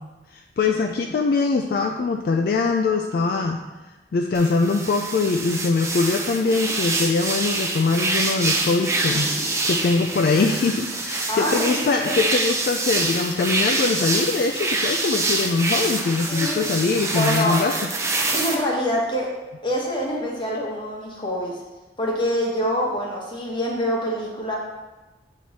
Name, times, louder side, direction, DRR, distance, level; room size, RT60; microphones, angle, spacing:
voice 1, 0.3-3.6 4.1-9.3 9.6-17.7, left 4 dB, 55° left, 3 dB, 0.3 m, -22 dB
sound 1, 4.3-18.5, right 2 dB, 15° right, 0.5 m, -26 dB
voice 2, 11.3-12.2 16.3-16.6 17.1-17.6 18.3-19.3 19.6-21.6 22.0-24.6, equal, 25° left, -3 dB, 1.1 m, -25 dB
7.5 x 3.1 x 4.1 m, 1.1 s
head